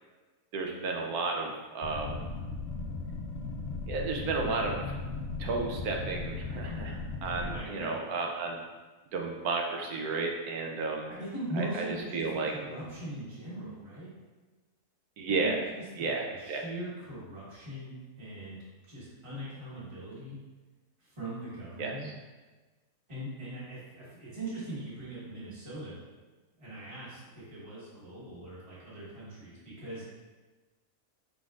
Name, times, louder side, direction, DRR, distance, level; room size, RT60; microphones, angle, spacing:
voice 1, 0.5-2.2 3.9-4.8 5.4-8.6 9.1-11.1 11.5-12.5 15.2-15.6 15.9-16.6 21.8-22.1, right 3 dB, 75° right, 1 dB, 1.2 m, -33 dB
sound 1, 1.8-7.6, left 3 dB, 80° left, 0.5 m, -37 dB
voice 2, 7.4-8.0 11.1-12.2 12.5-14.1 15.4-15.5 16.0-16.1 16.4-18.6 18.9-20.4 21.2-22.1 23.1-25.9 26.6-30.1, right 1 dB, 20° right, -9 dB, 1.4 m, -40 dB
5.1 x 3.9 x 2.4 m, 1.3 s
omnidirectional pair, 1.6 m